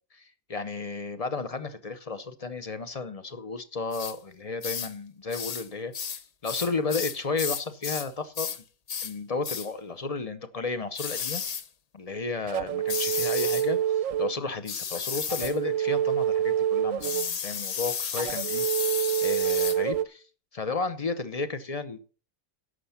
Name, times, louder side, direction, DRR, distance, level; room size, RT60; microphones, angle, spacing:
voice 1, 0.1-5.9 6.4-8.5 9.0-11.4 11.9-18.7 19.2-20.2 20.5-22.1, left 4 dB, 35° left, 11 dB, 0.7 m, -33 dB
sound 1, 3.9-4.2 4.6-4.9 5.3-5.7 5.9-8.1 8.3-8.6 8.9-9.1 9.4-9.7 11.0-11.7 12.9-13.7 14.7-15.6 17.0-19.8, left 7 dB, 80° left, 0.3 m, -33 dB
sound 2, 12.5-14.4 15.3-17.3 18.2-20.0, right 10 dB, 65° right, 1.0 m, -27 dB
11.5 x 6.7 x 5.7 m, 0.38 s
omnidirectional pair, 1.5 m